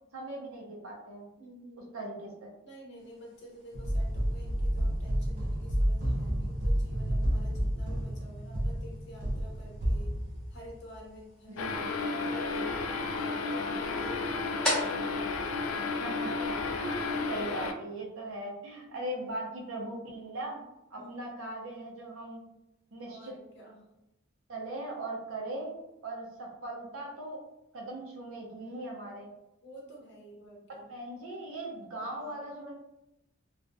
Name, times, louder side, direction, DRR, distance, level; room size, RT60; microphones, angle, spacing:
voice 1, 0.1-1.3 1.9-2.5 11.5-11.9 15.8-16.3 16.8-22.4 22.9-23.3 24.5-25.8 26.0-27.4 27.7-29.3 30.8-32.7, right 1 dB, 80° right, -1 dB, 0.7 m, -39 dB
voice 2, 1.4-2.0 2.6-10.2 10.5-15.9 16.7-17.4 18.9-19.3 21.0-21.9 23.1-23.9 29.6-30.9 32.0-32.4, equal, 55° left, -2 dB, 0.7 m, -50 dB
sound 1, 3.0-16.6, left 1 dB, 5° left, 0.6 m, -43 dB
sound 2, 3.7-11.0, equal, 40° right, 0.3 m, -30 dB
sound 3, 11.6-17.7, left 3 dB, 85° left, 0.3 m, -32 dB
2.4 x 2.1 x 2.5 m, 0.91 s
head